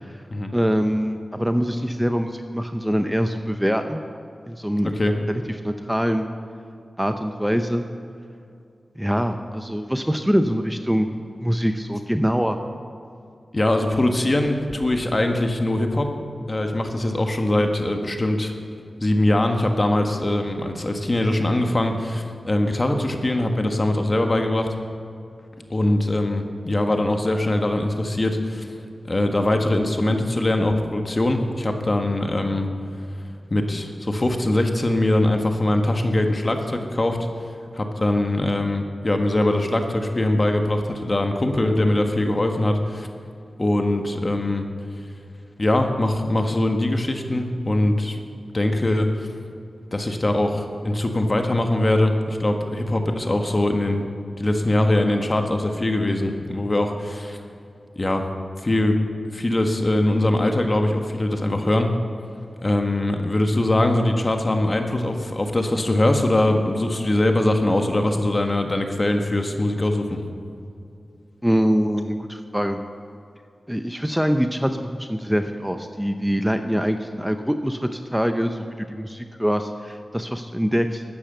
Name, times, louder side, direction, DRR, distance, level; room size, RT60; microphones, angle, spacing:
voice 1, 0.5-4.0 4.5-4.9 5.3-6.3 7.0-7.8 9.0-11.1 11.4-12.6 71.4-72.8 73.7-81.0, equal, 5° right, 7 dB, 0.8 m, -24 dB
voice 2, 13.5-16.1 16.5-18.5 19.0-24.7 25.7-28.7 29.1-32.7 33.5-37.2 37.7-43.1 43.6-44.7 45.6-48.2 48.5-49.3 49.9-54.1 54.4-57.4 57.9-58.2 58.6-59.0 59.3-61.9 62.6-70.2, left 1 dB, 35° left, 4 dB, 1.6 m, -22 dB
13.5 x 9.8 x 6.8 m, 2.5 s
cardioid pair, 55°, 0 cm